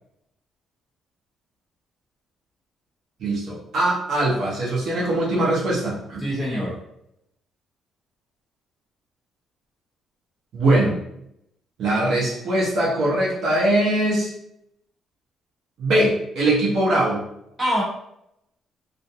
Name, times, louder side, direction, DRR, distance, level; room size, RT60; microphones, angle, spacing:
voice 1, 3.2-6.3 10.5-11.0 11.8-14.3 15.8-17.2, right 1 dB, 55° right, -5 dB, 0.7 m, -21 dB
voice 2, 6.2-6.8 17.6-17.8, equal, 5° right, -8 dB, 0.9 m, -24 dB
2.4 x 2.1 x 2.7 m, 0.78 s
cardioid pair, 180°, 0 cm